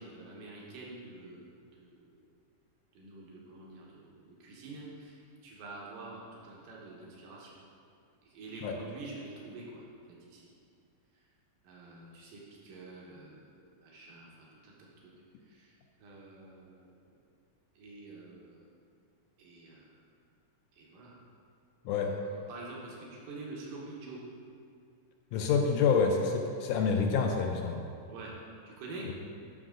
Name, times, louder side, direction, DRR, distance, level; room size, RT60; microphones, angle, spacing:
voice 1, 0.0-2.2 2.9-7.6 8.2-9.8 10.2-10.4 11.6-14.7 15.4-15.7 16.0-16.8 17.8-18.7 19.4-19.9 20.7-21.2 21.9-24.2 28.1-28.3 28.6-29.1, right 3 dB, 90° right, -4 dB, 3.0 m, -47 dB
voice 2, 25.3-27.8 29.1-29.2, left 5 dB, 80° left, 2 dB, 2.0 m, -27 dB
11.0 x 6.4 x 3.8 m, 2.3 s
omnidirectional pair, 3.8 m